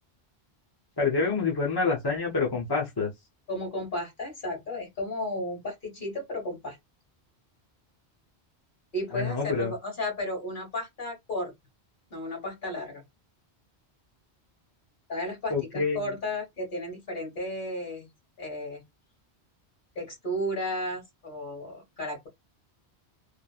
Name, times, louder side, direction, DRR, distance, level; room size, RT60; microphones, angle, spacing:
voice 1, 1.0-3.1 9.1-9.7 15.5-16.0, left 4 dB, 25° left, 0.7 m, -27 dB
voice 2, 3.5-6.8 8.9-11.5 12.1-13.0 15.1-18.1 18.4-18.8 19.9-22.3, left 1 dB, 50° left, 1.6 m, -33 dB
3.2 x 2.1 x 2.4 m
omnidirectional pair, 1.1 m